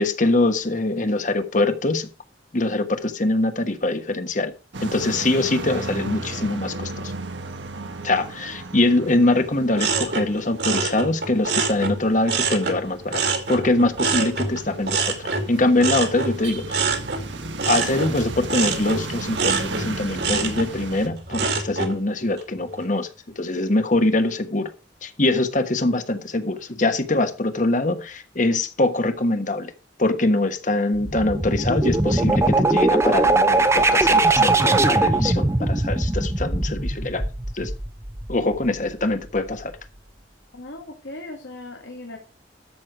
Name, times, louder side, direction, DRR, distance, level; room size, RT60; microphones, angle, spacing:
voice 1, 0.0-2.1 2.5-4.5 4.8-7.1 8.0-13.2 13.5-15.1 15.5-16.9 17.7-23.1 23.4-24.7 25.0-29.7 30.0-37.2 37.5-37.7 38.3-39.7, left 2 dB, 45° left, 8 dB, 1.3 m, -23 dB
sound 1, 4.7-21.1, right 3 dB, 80° right, 1.4 m, -35 dB
sound 2, 9.8-12.8 13.1-22.0 22.4-22.8, right 4 dB, 60° right, 2.2 m, -26 dB
sound 3, 30.9-38.6, right 2 dB, 15° right, 0.7 m, -20 dB
voice 2, 40.5-42.2, left 2 dB, 85° left, 2 dB, 1.8 m, -38 dB
13.0 x 6.4 x 4.9 m, 0.33 s
head